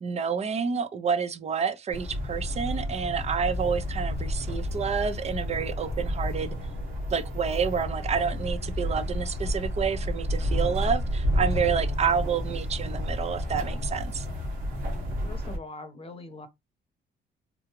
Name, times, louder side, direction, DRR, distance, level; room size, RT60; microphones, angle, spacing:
voice 1, 0.0-6.5 7.1-14.3, right 6 dB, 35° right, 0.5 m, -29 dB
sound 1, 1.9-15.6, equal, 85° right, 1.5 m, -30 dB
voice 2, 15.2-16.5, left 3 dB, 30° left, 0.9 m, -42 dB
3.7 x 2.3 x 3.0 m
cardioid pair, 90°, 20 cm